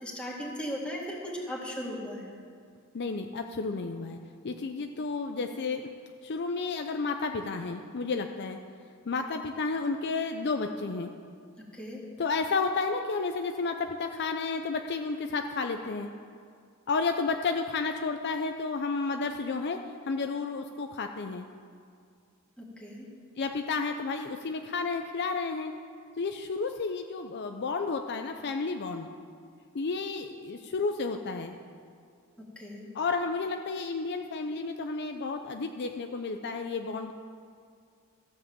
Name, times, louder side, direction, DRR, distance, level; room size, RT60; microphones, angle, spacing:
voice 1, 0.0-2.3 11.7-12.0 22.6-23.1 32.6-32.9, equal, 5° left, -4 dB, 2.1 m, -37 dB
voice 2, 2.9-4.2 4.4-5.9 6.2-8.6 9.1-11.1 12.2-16.1 16.9-19.8 20.1-21.4 23.4-25.7 26.2-29.1 29.7-31.5 32.9-37.1, left 4 dB, 50° left, 5 dB, 0.5 m, -31 dB
13.5 x 7.5 x 7.3 m, 2.2 s
head